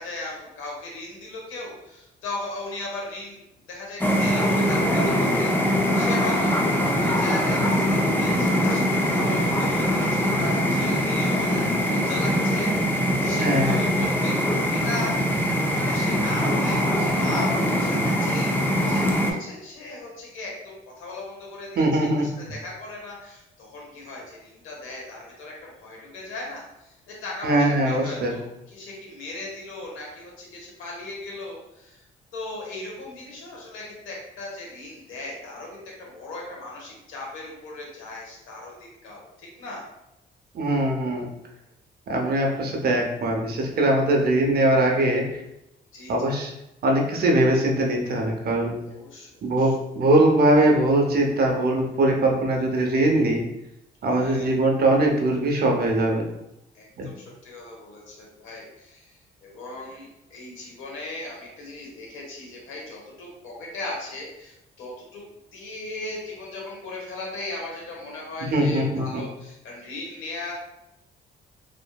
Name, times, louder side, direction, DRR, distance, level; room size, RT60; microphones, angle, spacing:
voice 1, 0.0-3.4 3.7-6.6 7.0-15.4 15.7-18.5 18.8-32.0 32.3-39.8 45.9-46.3 48.8-49.7 54.1-54.5 56.7-70.5, left 2 dB, 85° left, -2 dB, 0.9 m, -37 dB
sound 1, 4.0-19.3, equal, 10° left, 0.4 m, -22 dB
voice 2, 13.4-13.8 21.8-22.3 27.4-28.4 40.5-41.3 42.1-45.4 46.1-46.5 46.8-48.8 49.4-53.4 54.0-56.2 57.0-57.1 68.5-69.2, right 1 dB, 50° right, 1 dB, 0.6 m, -21 dB
2.6 x 2.5 x 2.2 m, 0.86 s
cardioid pair, 90°, 20 cm